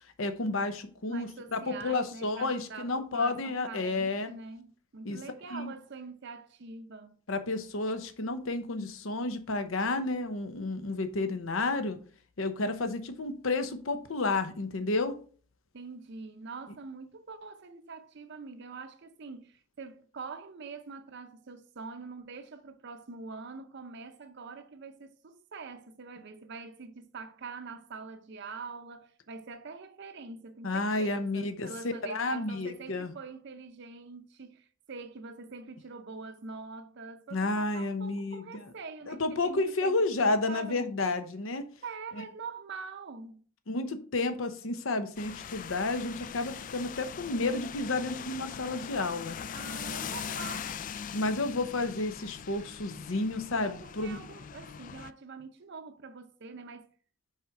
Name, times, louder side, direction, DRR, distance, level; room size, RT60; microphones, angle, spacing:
voice 1, 0.2-4.3 5.0-5.2 5.5-5.7 7.3-12.0 12.4-15.2 30.6-33.1 37.3-38.7 39.1-41.7 43.7-49.4 51.1-54.2, left 2 dB, 75° left, 0.8 m, -31 dB
voice 2, 1.1-7.2 15.7-39.9 40.3-41.0 41.8-43.4 49.5-50.6 53.6-56.9, right 4 dB, 55° right, 0.6 m, -44 dB
sound 1, 45.2-55.1, left 7 dB, 40° left, 0.3 m, -41 dB
5.5 x 5.1 x 4.7 m
head